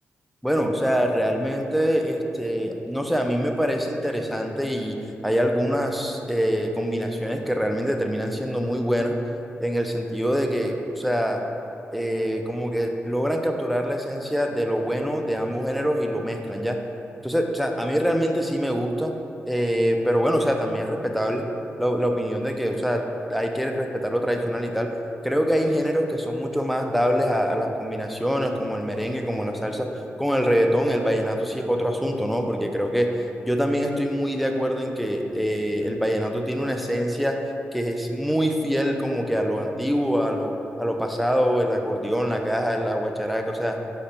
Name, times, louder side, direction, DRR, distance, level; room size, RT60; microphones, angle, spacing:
voice 1, 0.4-5.0 5.2-9.2 9.6-11.4 11.9-16.8 17.2-19.1 19.5-21.5 21.8-23.0 23.3-24.9 25.2-29.9 30.2-33.1 33.4-37.4 37.7-40.5 40.8-43.8, equal, ahead, 3 dB, 0.5 m, -24 dB
4.8 x 2.2 x 4.4 m, 2.8 s
supercardioid pair, 40°, 5 cm